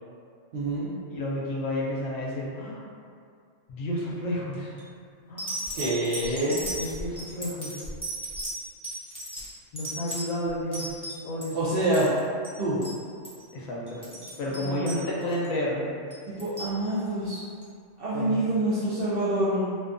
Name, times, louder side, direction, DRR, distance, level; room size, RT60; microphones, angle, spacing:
voice 1, 0.5-0.9 5.7-6.6 11.5-12.1 12.6-12.8 14.6-14.8 16.3-17.4 18.0-19.7, right 1 dB, 65° right, -10 dB, 0.6 m, -26 dB
voice 2, 1.1-2.8 3.7-4.8 5.3-5.6 6.8-7.8 9.7-10.9 11.2-11.8 13.5-14.1 14.4-15.9 18.1-18.4, left 1 dB, 85° left, -4 dB, 1.0 m, -31 dB
sound 1, 4.5-4.8 5.4-11.5 11.8-12.2 12.4-12.6 12.8-13.0 13.2-13.5 13.9-15.5 16.1-16.8 17.6-17.7, right 1 dB, 10° left, 0.4 m, -36 dB
2.6 x 2.2 x 2.5 m, 2.3 s
omnidirectional pair, 1.4 m